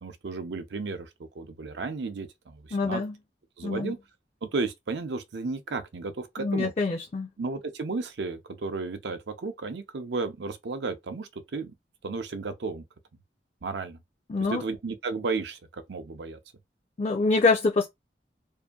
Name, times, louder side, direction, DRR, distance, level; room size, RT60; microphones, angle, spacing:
voice 1, 0.0-3.0 3.6-4.0 4.4-6.7 7.4-11.7 12.0-12.8 13.6-14.0 14.5-16.4, right 3 dB, 80° right, 0.6 m, -33 dB
voice 2, 2.7-3.1 3.6-3.9 6.4-7.3 14.3-14.6 17.0-17.9, left 3 dB, 35° left, 0.3 m, -25 dB
2.7 x 2.6 x 2.3 m
head